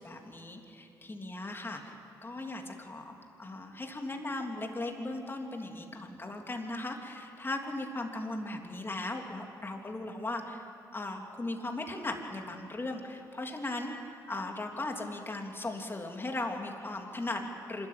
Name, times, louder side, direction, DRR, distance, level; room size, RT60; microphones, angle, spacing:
voice 1, 0.0-1.9 2.2-10.6 10.9-13.9 14.3-17.9, left 2 dB, 25° left, 2 dB, 3.2 m, -37 dB
25.5 x 13.5 x 9.4 m, 2.8 s
supercardioid pair, 55°, 8 cm